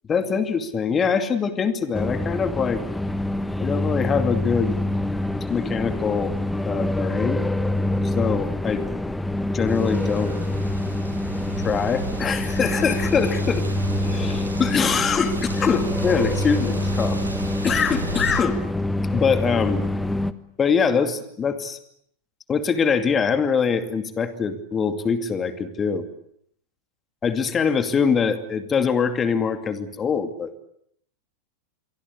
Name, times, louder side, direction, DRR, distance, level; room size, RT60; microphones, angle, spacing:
voice 1, 0.1-2.8 3.6-4.8 5.5-6.3 6.7-7.4 8.0-8.8 9.5-10.3 11.6-13.6 14.0-17.2 17.6-18.6 19.1-19.8 20.6-21.8 22.5-26.0 27.2-30.5, left 6 dB, 20° left, 9 dB, 2.5 m, -23 dB
sound 1, 1.9-20.3, left 1 dB, 5° left, 1.2 m, -26 dB
sound 2, 9.7-18.4, right 2 dB, 85° right, 6.0 m, -33 dB
27.0 x 23.5 x 8.2 m, 0.71 s
figure-of-eight pair, 90°, 0 cm